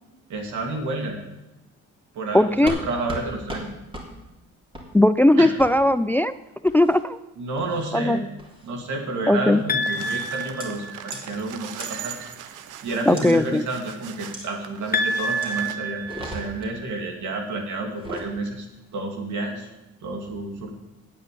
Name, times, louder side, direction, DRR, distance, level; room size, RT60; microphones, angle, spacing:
voice 1, 0.3-1.2 2.1-3.7 5.4-5.5 7.4-8.2 8.6-12.2 12.8-18.7 18.9-19.7 20.0-20.7, right 2 dB, 75° right, 3 dB, 2.7 m, -30 dB
voice 2, 2.3-2.8 4.9-6.3 6.7-7.2 7.9-8.2 9.3-9.6 13.1-13.6, left 1 dB, 5° left, 15 dB, 0.3 m, -18 dB
sound 1, 2.7-2.8 3.1-3.2 3.5-3.6 3.9-4.1 4.7-4.9 5.6-5.7 6.7-7.0 7.6-7.9 8.4-8.7 9.5-9.8 10.6-10.7 11.1-11.2 11.8-11.9 13.2-13.3 14.3-14.5 15.4-15.6 16.0-16.7 17.9-18.3, equal, 15° right, 3.4 m, -36 dB
sound 2, 9.7-11.3 14.9-17.0, equal, 30° left, 1.1 m, -28 dB
sound 3, 9.8-15.8, right 10 dB, 90° right, 0.8 m, -40 dB
9.6 x 8.6 x 8.5 m, 0.97 s
cardioid pair, 90°, 30 cm